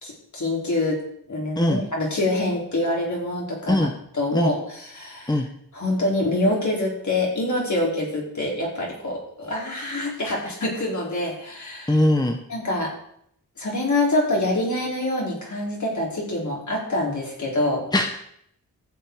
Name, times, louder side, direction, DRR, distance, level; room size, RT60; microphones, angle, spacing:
voice 1, 0.0-1.0 1.3-3.9 4.1-5.5 5.7-12.0 12.5-12.9 13.6-17.8, left 1 dB, 55° left, -3 dB, 4.8 m, -25 dB
voice 2, 11.9-12.4 17.9-18.2, left 1 dB, 10° left, 4 dB, 1.0 m, -20 dB
14.5 x 8.1 x 4.9 m, 0.70 s
wide cardioid pair, 80°, 34 cm